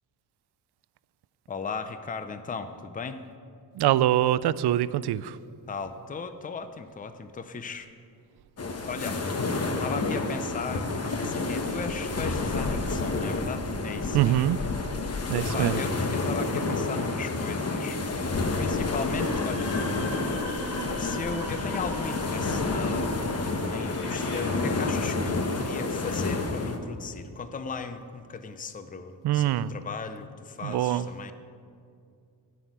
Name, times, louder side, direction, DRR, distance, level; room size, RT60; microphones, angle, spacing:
voice 1, 1.5-3.2 5.7-7.9 8.8-9.2 9.8-10.9 11.2-14.4 15.5-18.0 18.6-19.8 21.0-31.3, left 5 dB, 20° left, 9 dB, 0.6 m, -37 dB
voice 2, 3.7-5.4 14.1-14.6 15.3-15.8 29.2-29.8 30.6-31.1, right 13 dB, 70° right, 16 dB, 0.5 m, -24 dB
sound 1, 8.6-26.8, left 3 dB, 35° left, 1.2 m, -29 dB
sound 2, 19.1-24.4, left 1 dB, 70° left, 3.2 m, -38 dB
15.0 x 6.4 x 9.2 m, 2.3 s
wide cardioid pair, 150°, 41 cm